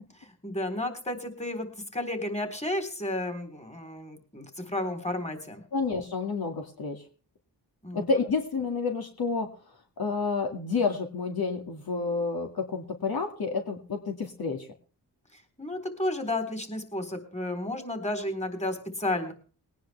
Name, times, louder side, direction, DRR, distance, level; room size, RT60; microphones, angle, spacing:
voice 1, 0.2-1.7 1.9-5.6 7.8-8.1 15.3-19.3, left 1 dB, 15° left, 6 dB, 3.8 m, -32 dB
voice 2, 5.7-7.0 7.9-9.5 10.0-14.7, left 4 dB, 55° left, 3 dB, 2.2 m, -29 dB
20.5 x 10.0 x 3.4 m, 0.37 s
cardioid pair, 70°, 43 cm